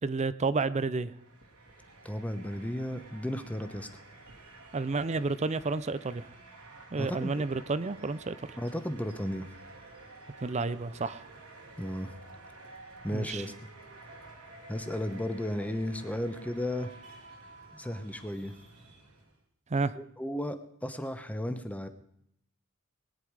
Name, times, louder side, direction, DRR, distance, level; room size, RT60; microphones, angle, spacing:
voice 1, 0.0-1.1 4.7-6.3 6.9-8.5 10.4-11.2 13.1-13.4 19.7-19.9, right 3 dB, 30° right, 16 dB, 0.5 m, -30 dB
sound 1, 1.0-19.4, right 2 dB, 80° right, 2.5 m, -51 dB
voice 2, 2.0-3.9 7.0-7.4 8.6-9.5 11.8-12.1 13.0-13.5 14.7-16.9 17.7-18.5 20.0-21.9, left 1 dB, 5° left, 10 dB, 0.9 m, -34 dB
20.5 x 10.0 x 4.8 m, 0.74 s
head